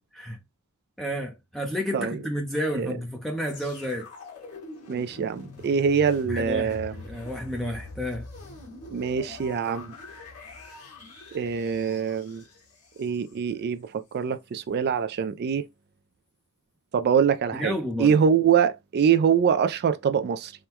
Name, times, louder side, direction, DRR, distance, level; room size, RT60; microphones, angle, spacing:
voice 1, 1.0-4.1 6.3-8.3 17.5-18.2, equal, ahead, 0.6 m, -31 dB
sound 1, 3.4-13.5 14.1-14.2, left 3 dB, 65° left, 2.3 m, -43 dB
voice 2, 4.9-6.9 8.9-9.9 11.3-12.4 13.0-15.6 16.9-20.5, right 7 dB, 45° right, 0.3 m, -24 dB
4.3 x 2.2 x 3.4 m
head